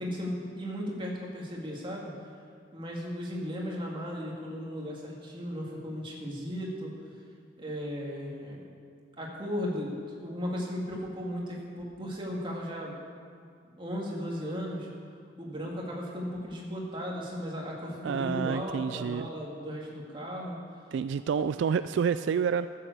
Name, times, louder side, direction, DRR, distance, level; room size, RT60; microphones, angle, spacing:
voice 1, 0.0-2.1 2.7-6.9 7.6-8.7 9.2-13.0 13.8-14.9 15.4-20.6, equal, 30° right, -3 dB, 2.3 m, -36 dB
voice 2, 18.0-19.3 20.9-22.7, right 6 dB, 75° right, 12 dB, 0.3 m, -28 dB
14.5 x 7.6 x 6.7 m, 2.3 s
head